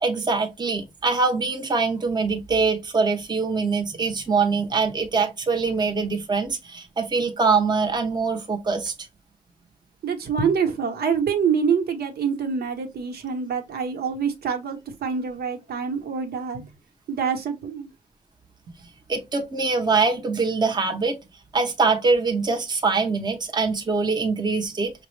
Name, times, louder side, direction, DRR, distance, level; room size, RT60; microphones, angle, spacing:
voice 1, 0.0-8.9 19.1-21.2 21.5-24.9, right 4 dB, 25° right, 0.7 m, -23 dB
voice 2, 10.0-16.7 17.1-17.9 18.7-18.8, right 6 dB, 80° right, 0.9 m, -26 dB
5.8 x 2.0 x 3.1 m
wide cardioid pair, 160°, 16 cm